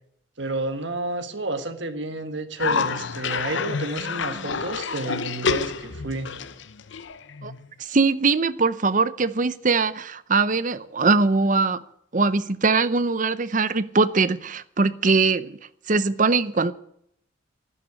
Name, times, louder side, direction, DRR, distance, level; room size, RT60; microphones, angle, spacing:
voice 1, 0.4-6.3, right 2 dB, 60° right, 1.7 m, -30 dB
Cough, 2.6-7.7, left 5 dB, 65° left, 0.8 m, -28 dB
voice 2, 7.8-11.8 12.1-15.6 15.9-16.7, right 4 dB, 40° right, 0.7 m, -21 dB
12.0 x 10.5 x 9.7 m
head